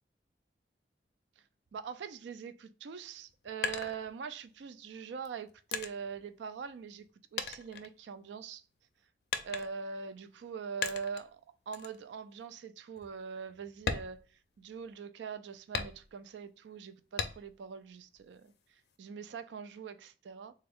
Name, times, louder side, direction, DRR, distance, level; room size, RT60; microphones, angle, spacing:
voice 1, 1.7-7.1 7.3-8.6 9.4-11.4 11.7-14.2 14.6-18.5 19.0-20.5, right 6 dB, 90° right, 0.3 m, -43 dB
sound 1, 3.1-4.6 5.2-7.1 7.4-8.5 9.3-10.0 10.8-11.3 11.7-12.0 12.4-12.5 13.0-13.1 13.7-15.0 15.7-16.4 17.2-17.7 18.1-19.0, left 5 dB, 70° left, 0.4 m, -39 dB
3.3 x 2.3 x 3.4 m
head